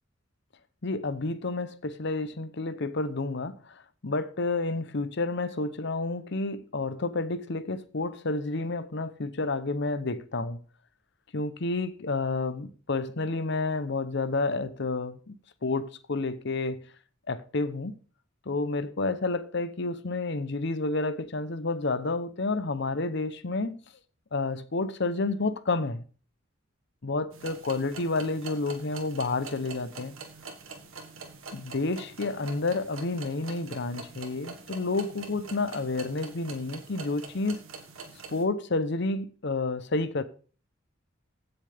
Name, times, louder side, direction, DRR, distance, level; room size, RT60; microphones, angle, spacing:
voice 1, 0.8-10.6 11.3-15.3 15.6-16.9 17.3-18.0 18.5-23.8 24.3-26.0 27.0-30.1 31.5-37.6 38.3-40.2, left 3 dB, 60° left, 0.8 m, -30 dB
sound 1, 27.3-38.4, right 4 dB, 90° right, 1.8 m, -44 dB
15.5 x 7.0 x 3.5 m
head